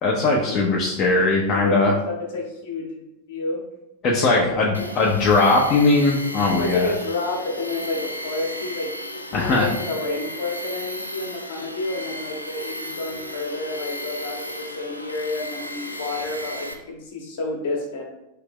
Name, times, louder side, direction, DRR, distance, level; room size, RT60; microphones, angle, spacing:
voice 1, 0.0-1.9 4.0-6.9 9.3-9.7, left 3 dB, 30° left, -2 dB, 0.6 m, -19 dB
voice 2, 1.0-3.6 4.3-4.9 6.5-18.0, left 2 dB, 55° left, 0 dB, 1.0 m, -30 dB
Tools, 4.7-16.7, equal, 90° left, 0.4 m, -34 dB
3.2 x 2.8 x 3.5 m, 0.92 s
figure-of-eight pair, 90°, 0 cm